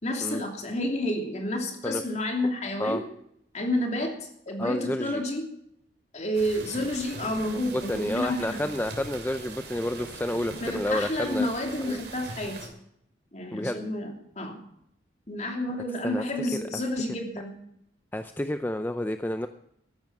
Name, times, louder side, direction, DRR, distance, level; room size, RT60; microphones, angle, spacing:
voice 1, 0.0-3.0 3.5-5.5 6.1-8.6 10.5-12.7 13.3-14.1 14.4-14.6 15.3-17.6, left 1 dB, 40° left, 2 dB, 2.9 m, -30 dB
voice 2, 4.6-5.2 7.7-11.5 11.8-12.0 13.5-13.8 16.0-16.2 18.1-19.5, left 1 dB, 10° left, 9 dB, 0.5 m, -30 dB
sound 1, 6.3-12.7, right 3 dB, 60° right, 3.0 m, -41 dB
14.0 x 11.0 x 6.0 m, 0.74 s
head